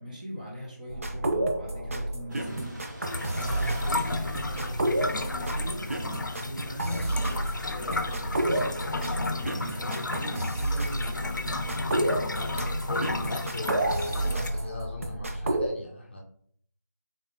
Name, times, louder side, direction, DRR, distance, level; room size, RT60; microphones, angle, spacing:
voice 1, 0.0-2.8 3.1-5.8 6.4-7.4 7.7-12.2 12.9-13.2, equal, 25° right, -2 dB, 1.0 m, -40 dB
sound 1, 0.9-15.7, right 1 dB, 50° right, 0.5 m, -30 dB
Car / Idling / Accelerating revving vroom, 2.3-14.6, right 1 dB, 85° right, 1.5 m, -42 dB
sound 2, 3.0-14.5, left 3 dB, 85° left, 0.5 m, -33 dB
voice 2, 6.8-7.2 13.2-16.2, left 1 dB, 35° left, -1 dB, 0.6 m, -38 dB
3.8 x 2.8 x 3.9 m, 0.63 s
figure-of-eight pair, 170°, 10 cm